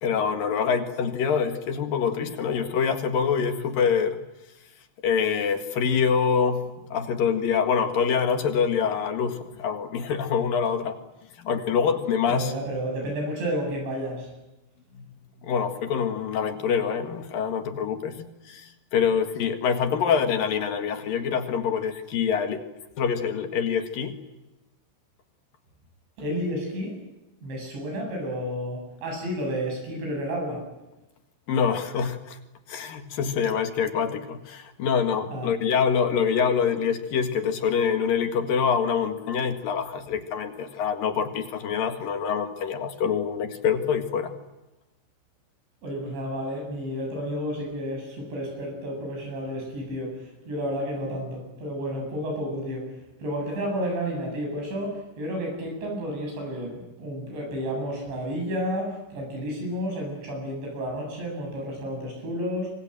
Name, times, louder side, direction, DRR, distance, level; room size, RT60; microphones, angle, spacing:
voice 1, 0.0-4.2 5.0-11.0 11.4-12.5 14.9-15.0 15.4-22.6 23.0-24.2 31.5-32.4 32.7-44.3, left 6 dB, 55° left, 7 dB, 3.0 m, -25 dB
voice 2, 12.3-14.3 26.2-27.0 27.4-30.6 35.3-35.5 45.8-52.9 53.2-62.7, equal, 65° right, 1 dB, 10.0 m, -31 dB
26.5 x 26.0 x 7.8 m, 1.0 s
omnidirectional pair, 5.6 m